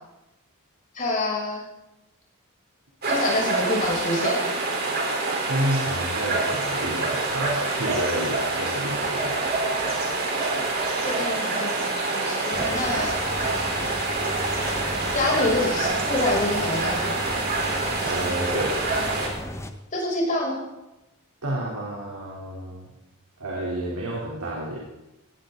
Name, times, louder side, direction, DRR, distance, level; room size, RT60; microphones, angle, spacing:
voice 1, 0.9-1.6 3.0-4.4 11.0-13.4 15.1-17.2 19.9-20.6, left 2 dB, 35° left, -4 dB, 6.8 m, -27 dB
sound 1, 3.0-19.3, right 3 dB, 45° right, 4.0 m, -26 dB
voice 2, 5.4-9.4 18.0-18.7 21.4-22.9 23.4-24.8, right 1 dB, 85° right, -4 dB, 3.5 m, -30 dB
sound 2, 12.5-19.7, left 1 dB, 15° left, 1.0 m, -35 dB
19.0 x 16.0 x 3.9 m, 0.98 s
head